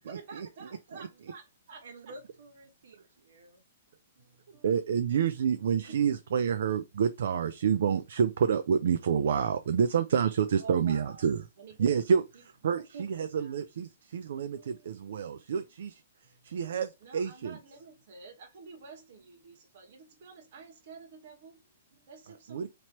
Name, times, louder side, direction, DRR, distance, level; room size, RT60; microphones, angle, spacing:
voice 1, 0.0-2.2 3.2-3.3 4.1-4.7 5.8-6.0 10.6-11.3 11.6-11.9 12.3-12.4 13.4-13.6 14.5-15.7 16.2-22.7, right 5 dB, 45° right, 1.3 m, -51 dB
voice 2, 1.8-3.6 11.9-12.0 12.9-13.0 13.7-13.8, right 3 dB, 80° right, 1.3 m, -48 dB
voice 3, 4.6-11.4 11.8-12.2 12.6-15.9 16.4-17.6 22.5-22.7, right 7 dB, 65° right, 0.4 m, -28 dB
3.0 x 2.9 x 4.3 m
hypercardioid pair, 170°, 0 cm